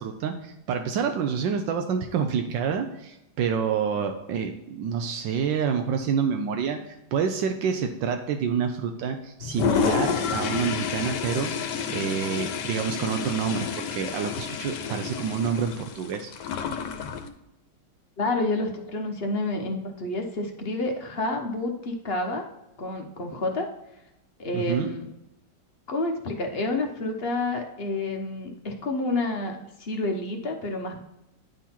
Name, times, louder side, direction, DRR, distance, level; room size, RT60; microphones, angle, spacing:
voice 1, 0.0-16.3 24.5-24.9, right 7 dB, 85° right, 5 dB, 1.4 m, -28 dB
Toilet flush, 9.4-17.3, left 7 dB, 70° left, 1.3 m, -30 dB
voice 2, 18.2-22.4 22.8-23.7 24.4-25.1 25.9-31.0, left 2 dB, 45° left, 3 dB, 0.8 m, -29 dB
10.0 x 3.9 x 4.3 m, 0.89 s
omnidirectional pair, 2.0 m